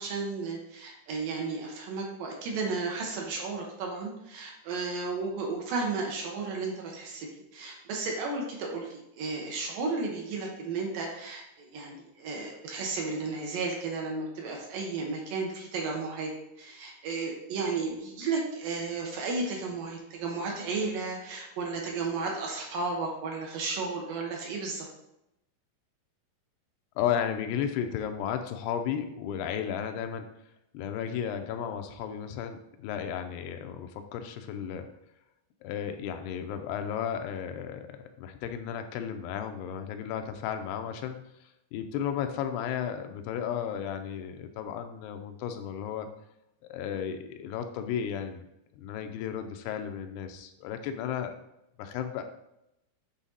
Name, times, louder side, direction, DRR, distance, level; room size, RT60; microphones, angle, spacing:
voice 1, 0.0-16.3 16.6-24.9, right 4 dB, 70° right, 0 dB, 2.4 m, -33 dB
voice 2, 27.0-30.3 30.7-34.9 35.6-46.1 46.6-48.5 48.7-51.4 51.8-52.2, left 8 dB, 85° left, 7 dB, 2.7 m, -34 dB
8.7 x 4.1 x 3.9 m, 0.84 s
omnidirectional pair, 4.6 m